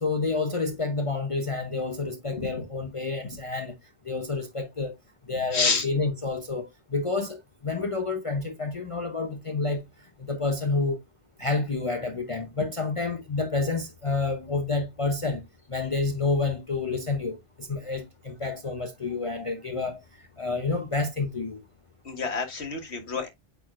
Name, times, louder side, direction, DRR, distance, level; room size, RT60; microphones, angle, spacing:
voice 1, 0.0-3.7 4.0-4.9 5.3-9.8 10.3-11.0 11.4-15.4 15.7-20.0 20.4-21.6, left 3 dB, 35° left, 0.8 m, -29 dB
voice 2, 5.5-5.9 22.1-23.3, left 4 dB, 80° left, 1.8 m, -28 dB
8.7 x 4.5 x 2.4 m
omnidirectional pair, 1.1 m